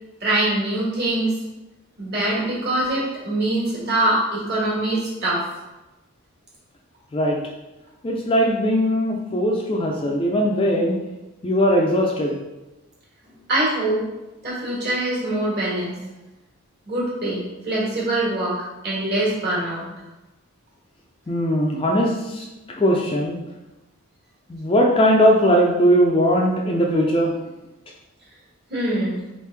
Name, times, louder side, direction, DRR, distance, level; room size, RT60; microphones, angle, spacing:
voice 1, 0.2-1.3 2.0-5.4 13.5-14.0 14.4-16.0 16.9-18.6 18.8-19.9 28.7-29.2, right 1 dB, 45° right, -6 dB, 1.4 m, -23 dB
voice 2, 8.0-11.0 11.4-12.4 21.3-22.5 22.8-23.4 24.5-27.3, equal, 25° left, 0 dB, 0.3 m, -19 dB
4.0 x 3.2 x 3.3 m, 1.1 s
head